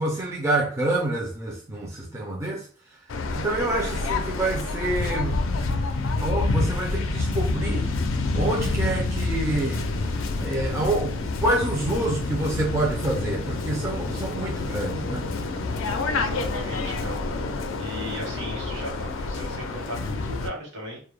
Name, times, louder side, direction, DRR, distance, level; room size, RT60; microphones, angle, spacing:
voice 1, 0.0-3.0 3.3-5.4 6.2-7.9 8.3-9.8 10.1-15.3, right 2 dB, 15° right, 0.3 m, -27 dB
Waves surf, 3.1-20.5, left 3 dB, 80° left, 0.4 m, -28 dB
voice 2, 16.1-17.2 17.8-21.0, equal, 65° right, 1.0 m, -36 dB
2.2 x 2.0 x 3.1 m
head